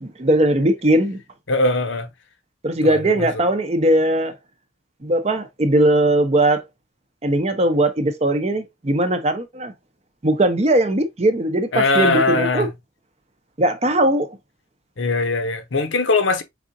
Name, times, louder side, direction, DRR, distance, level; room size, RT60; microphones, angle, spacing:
voice 1, 0.0-1.2 2.6-4.4 5.0-6.7 7.2-9.7 10.2-12.7 13.6-14.3, right 1 dB, 30° right, 0.6 m, -19 dB
voice 2, 1.5-2.1 2.8-3.3 11.7-12.7 15.0-16.4, left 3 dB, 65° left, 0.8 m, -20 dB
4.9 x 3.6 x 2.6 m
head